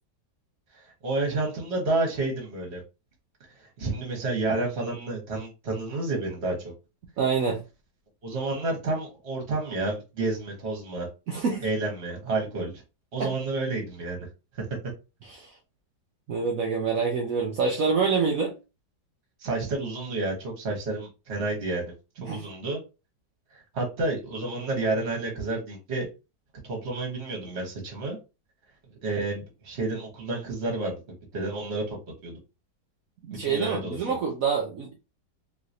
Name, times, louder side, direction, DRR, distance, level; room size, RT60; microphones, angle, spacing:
voice 1, 0.7-2.8 3.8-6.7 8.2-11.1 11.6-12.8 13.1-14.3 14.5-14.8 19.4-21.9 22.2-22.8 23.5-26.1 26.6-28.2 29.0-31.0 31.3-32.4 33.4-34.0, right 2 dB, 40° right, 1.3 m, -30 dB
voice 2, 7.2-7.6 11.3-11.6 13.2-13.3 15.3-15.5 16.3-18.5 22.3-22.4 33.2-34.9, right 5 dB, 65° right, 0.8 m, -26 dB
3.1 x 2.9 x 2.6 m
omnidirectional pair, 2.0 m